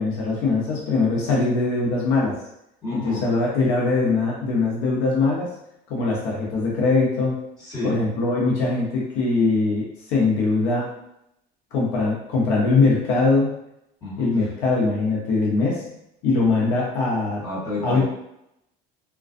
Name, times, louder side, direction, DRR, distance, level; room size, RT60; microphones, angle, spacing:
voice 1, 0.0-2.4 3.0-5.5 5.9-7.4 7.8-10.9 11.7-13.5 14.2-15.8 16.2-17.4 17.8-18.0, left 3 dB, 75° left, -3 dB, 0.7 m, -21 dB
voice 2, 2.8-3.2 7.6-7.9 14.0-14.3 16.5-16.6 17.4-18.0, left 2 dB, 20° left, -12 dB, 1.3 m, -30 dB
2.4 x 2.2 x 2.4 m, 0.81 s
cardioid pair, 175°, 20 cm